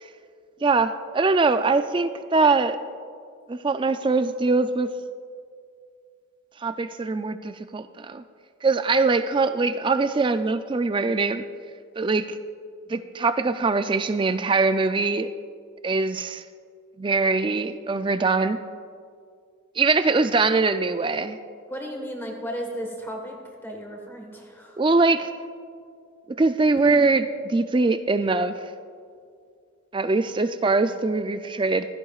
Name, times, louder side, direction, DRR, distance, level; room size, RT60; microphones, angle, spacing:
voice 1, 0.6-2.8 3.5-4.9 6.6-8.2 8.6-11.4 12.0-12.3 12.9-15.3 15.8-16.4 17.0-18.6 19.8-21.4 24.8-25.3 26.4-28.5 29.9-31.9, right 3 dB, 20° right, 10 dB, 0.3 m, -22 dB
voice 2, 21.7-23.4 23.6-24.8 26.9-27.0, equal, 10° left, 1 dB, 1.4 m, -34 dB
15.5 x 14.5 x 2.4 m, 2.2 s
head